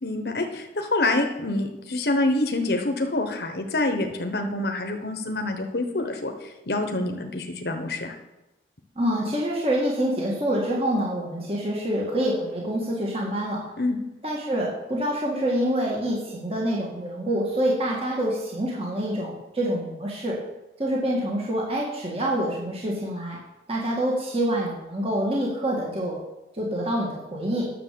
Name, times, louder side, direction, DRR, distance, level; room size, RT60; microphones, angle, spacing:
voice 1, 0.0-8.1 13.8-14.0, left 2 dB, 60° left, 4 dB, 1.1 m, -26 dB
voice 2, 9.0-13.6 14.2-20.4 20.8-23.4 23.7-26.2 26.5-27.7, right 1 dB, 30° right, -3 dB, 2.0 m, -26 dB
10.0 x 7.0 x 6.9 m, 0.98 s
head